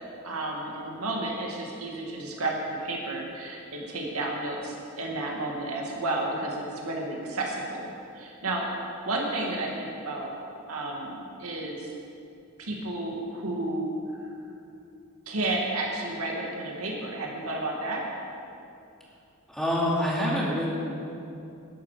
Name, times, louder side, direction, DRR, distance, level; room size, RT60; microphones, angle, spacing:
voice 1, 0.2-7.9 8.1-8.7 9.1-10.3 10.7-11.9 12.6-13.9 15.3-18.0, right 2 dB, 85° right, -1 dB, 2.1 m, -32 dB
voice 2, 19.5-20.7, equal, ahead, -6 dB, 2.5 m, -26 dB
12.5 x 11.0 x 5.0 m, 2.6 s
head